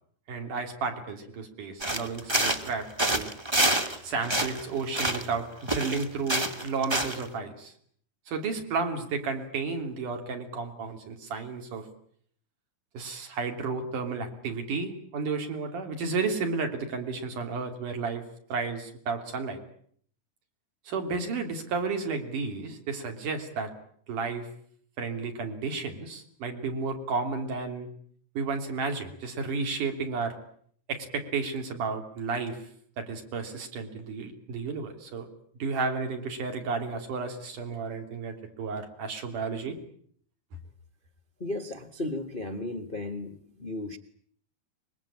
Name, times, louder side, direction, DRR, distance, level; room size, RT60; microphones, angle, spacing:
voice 1, 0.3-3.3 4.0-7.7 8.3-11.9 12.9-18.2 18.5-19.6 20.9-23.7 24.1-24.5 25.0-27.9 28.3-30.4 30.9-32.6 33.0-35.3 35.6-39.8, right 4 dB, 70° right, 4.8 m, -32 dB
sound 1, 1.8-4.0 4.2-5.4 5.7-7.3, right 1 dB, 20° right, 0.7 m, -27 dB
voice 2, 41.4-44.0, left 2 dB, 80° left, 0.4 m, -35 dB
25.0 x 22.5 x 8.9 m
omnidirectional pair, 3.7 m